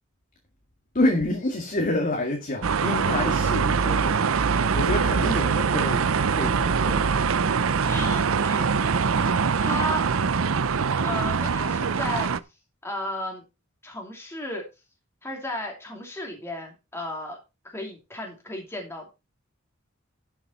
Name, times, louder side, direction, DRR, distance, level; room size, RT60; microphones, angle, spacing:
voice 1, 0.9-4.3 4.7-6.1 6.3-7.1, left 1 dB, 40° left, 2.1 m, -27 dB
sound 1, 2.6-12.4, right 5 dB, 80° right, 0.6 m, -23 dB
voice 2, 4.9-5.4 7.8-8.8 9.6-10.0 11.0-12.3 12.8-13.4 13.8-14.6 15.2-17.4 17.6-19.1, left 1 dB, 15° left, 2.7 m, -34 dB
11.5 x 7.1 x 4.3 m
head